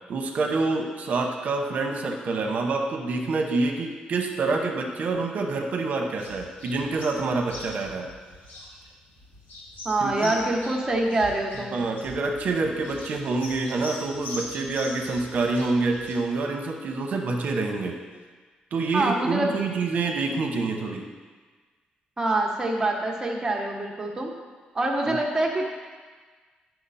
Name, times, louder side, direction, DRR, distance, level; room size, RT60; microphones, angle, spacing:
voice 1, 0.1-8.1 10.0-10.3 11.7-18.0 18.7-21.1 25.1-25.2, right 3 dB, 60° right, 2 dB, 1.0 m, -27 dB
sound 1, 6.2-16.1, left 2 dB, 75° left, 1.9 m, -42 dB
voice 2, 9.8-11.8 18.9-19.5 22.2-24.3 24.7-25.7, right 2 dB, 20° right, 0 dB, 1.2 m, -25 dB
10.0 x 5.9 x 4.2 m, 1.4 s
cardioid pair, 130°, 3 cm